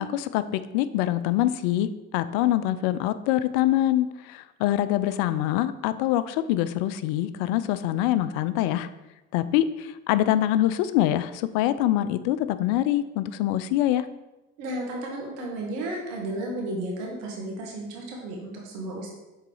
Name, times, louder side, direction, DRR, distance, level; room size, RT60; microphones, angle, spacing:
voice 1, 0.0-8.9 9.3-14.1, left 13 dB, 75° left, 14 dB, 0.5 m, -24 dB
voice 2, 14.6-19.1, right 1 dB, 85° right, -1 dB, 1.7 m, -33 dB
6.6 x 3.9 x 4.8 m, 1.0 s
hypercardioid pair, 70°, 39 cm